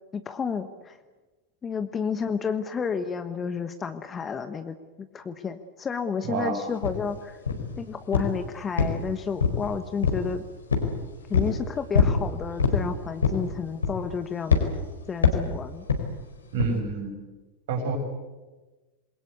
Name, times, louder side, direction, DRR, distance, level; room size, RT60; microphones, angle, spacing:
voice 1, 0.1-1.0 1.6-7.4 7.8-10.4 11.3-14.7 15.1-15.8, left 6 dB, 20° left, 10 dB, 1.3 m, -31 dB
voice 2, 6.2-6.6 16.5-17.1 17.7-18.0, right 4 dB, 55° right, 3 dB, 7.3 m, -28 dB
sound 1, 6.8-7.0 7.5-7.8 8.1-8.4 8.8-9.7 10.0-10.3 10.7-10.9 11.3-11.6 11.9-12.2 12.6-12.8 13.2-13.5 13.8-14.1 14.5-14.7 15.2-15.5 15.9-16.1 16.6-16.8, left 5 dB, 75° left, 4.5 m, -22 dB
27.5 x 22.5 x 8.3 m, 1.2 s
figure-of-eight pair, 90°, 0 cm